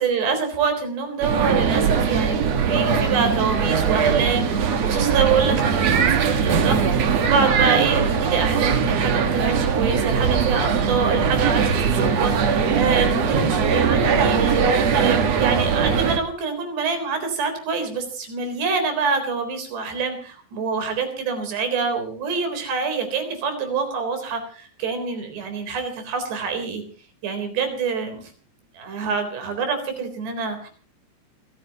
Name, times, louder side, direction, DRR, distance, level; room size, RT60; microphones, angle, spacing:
voice 1, 0.0-26.8 27.2-28.3 28.7-30.7, right 5 dB, 70° right, 7 dB, 5.9 m, -26 dB
sound 1, 1.2-16.2, right 6 dB, 55° right, 2.0 m, -20 dB
28.5 x 14.5 x 2.9 m, 0.40 s
omnidirectional pair, 5.1 m